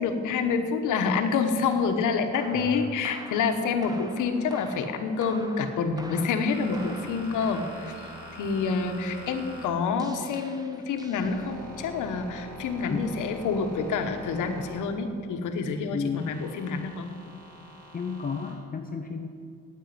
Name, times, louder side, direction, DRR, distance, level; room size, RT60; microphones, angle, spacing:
voice 1, 0.0-17.1, left 5 dB, 85° left, 7 dB, 1.3 m, -28 dB
sound 1, 1.7-11.9, right 1 dB, 15° right, 1.3 m, -47 dB
voice 2, 2.5-3.0 12.9-13.0 15.9-16.3 17.9-19.3, left 5 dB, 30° left, 4 dB, 0.9 m, -32 dB
sound 2, 3.3-5.3 6.1-10.3 10.7-15.3 16.1-18.5, equal, 80° right, 4.0 m, -45 dB
9.3 x 8.8 x 9.5 m, 2.2 s
cardioid pair, 90°, 30 cm